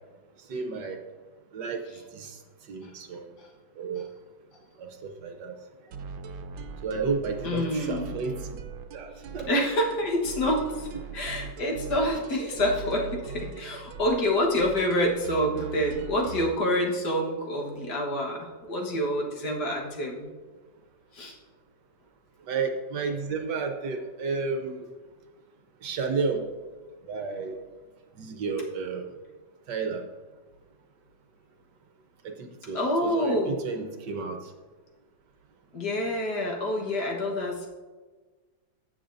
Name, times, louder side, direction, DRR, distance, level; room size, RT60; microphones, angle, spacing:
voice 1, 0.5-1.0 1.5-1.8 2.1-2.4 2.7-3.3 3.8-4.1 4.8-5.5 6.8-8.3 8.9-9.6 12.4-12.6 22.4-24.9 25.8-26.4 27.1-27.6 28.2-29.1 29.7-30.0 32.2-34.5 36.0-36.1, right 4 dB, 70° right, 5 dB, 1.5 m, -32 dB
sound 1, 5.9-16.6, right 6 dB, 85° right, 1.4 m, -40 dB
voice 2, 7.4-8.1 9.5-10.9 11.1-20.3 21.1-21.4 32.7-33.6 35.7-37.7, equal, 60° left, -1 dB, 1.9 m, -27 dB
17.0 x 6.9 x 2.6 m, 1.4 s
omnidirectional pair, 2.0 m